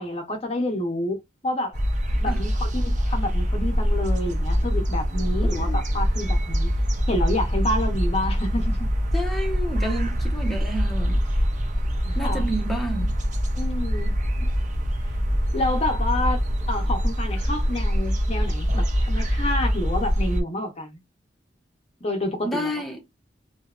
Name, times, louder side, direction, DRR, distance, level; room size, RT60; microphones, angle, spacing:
voice 1, 0.0-1.8 2.2-6.7 7.1-8.9 12.2-12.5 13.6-14.1 15.5-16.4 16.7-21.0 22.0-22.7, left 1 dB, 35° left, 0.7 m, -28 dB
sound 1, 1.7-20.4, equal, 40° right, 0.6 m, -24 dB
voice 2, 5.4-5.8 9.1-11.2 11.6-13.2 22.4-23.0, right 1 dB, ahead, 0.7 m, -31 dB
2.8 x 2.2 x 2.3 m
head